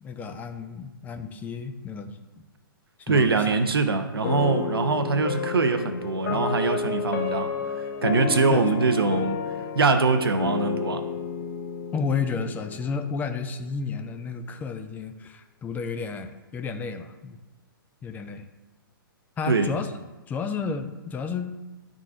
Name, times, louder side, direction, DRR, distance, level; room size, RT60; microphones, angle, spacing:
voice 1, 0.0-2.4 3.1-3.5 8.5-8.6 11.9-17.4 18.0-18.4 19.4-19.9 20.3-21.5, left 5 dB, 15° left, 7 dB, 0.4 m, -32 dB
voice 2, 3.1-7.5 7.8-11.0 19.5-19.7, right 4 dB, 85° right, 8 dB, 0.7 m, -23 dB
sound 1, 4.2-13.4, left 6 dB, 50° left, 0.7 m, -31 dB
10.5 x 3.7 x 2.5 m, 1.1 s
hypercardioid pair, 125°, 12 cm